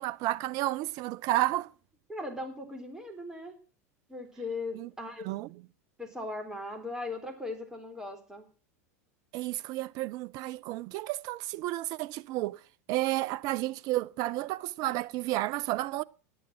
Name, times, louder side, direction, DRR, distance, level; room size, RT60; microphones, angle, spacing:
voice 1, 0.0-1.7 4.7-4.9 5.2-5.5 9.3-12.6 12.9-16.0, right 16 dB, 50° right, 0.6 m, -31 dB
voice 2, 2.1-3.6 4.1-5.3 6.0-8.5, left 2 dB, 5° right, 3.8 m, -38 dB
10.5 x 8.8 x 7.5 m
hypercardioid pair, 85°, 8 cm